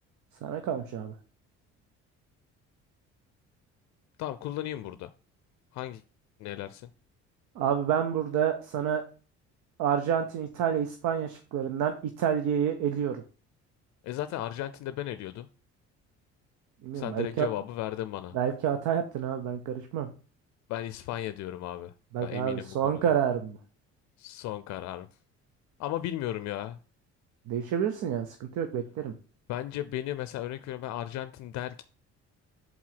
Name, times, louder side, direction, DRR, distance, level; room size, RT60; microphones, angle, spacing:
voice 1, 0.4-1.1 7.6-9.0 9.8-13.2 16.8-17.5 18.3-20.1 22.1-23.6 27.5-29.1, right 8 dB, 75° right, 0.8 m, -28 dB
voice 2, 4.2-5.1 5.7-6.0 6.4-6.9 14.0-15.5 16.9-18.4 20.7-23.1 24.2-25.1 25.8-26.8 29.5-31.8, left 13 dB, 70° left, 0.5 m, -35 dB
4.7 x 4.0 x 5.7 m
cardioid pair, 100°, 30 cm